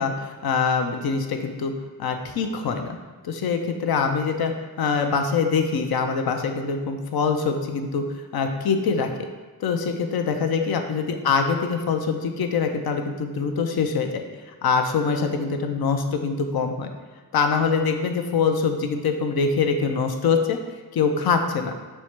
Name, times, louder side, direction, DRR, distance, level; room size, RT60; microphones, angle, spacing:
voice 1, 0.0-1.7 2.0-3.0 3.2-4.5 4.8-9.1 9.6-14.2 14.6-16.9 17.3-20.6 20.9-21.7, left 5 dB, 80° left, 5 dB, 0.5 m, -24 dB
4.5 x 2.1 x 4.4 m, 1.4 s
wide cardioid pair, 70°, 36 cm